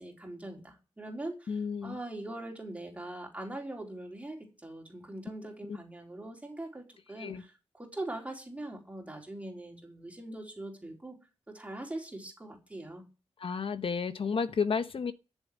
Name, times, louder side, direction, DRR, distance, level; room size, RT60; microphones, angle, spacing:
voice 1, 0.0-11.2 11.5-13.0, right 1 dB, 10° right, 3.9 m, -42 dB
voice 2, 1.5-2.0 7.2-7.4 13.4-15.1, left 5 dB, 55° left, 1.0 m, -32 dB
13.5 x 7.3 x 9.4 m
wide cardioid pair, 130°, 11 cm